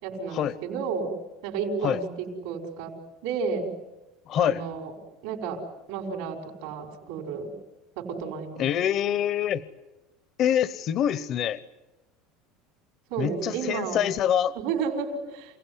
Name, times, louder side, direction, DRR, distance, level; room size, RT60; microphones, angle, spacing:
voice 1, 0.0-1.1 1.4-2.9 3.2-3.7 4.4-4.9 5.2-5.6 5.9-7.5 8.0-8.7 13.1-14.1 14.5-15.6, right 5 dB, 80° right, 2 dB, 5.1 m, -32 dB
voice 2, 4.3-4.6 8.6-9.7 10.4-11.6 13.2-14.5, left 10 dB, 45° left, 16 dB, 0.8 m, -25 dB
28.0 x 17.5 x 9.7 m, 1.1 s
supercardioid pair, 140°, 0 cm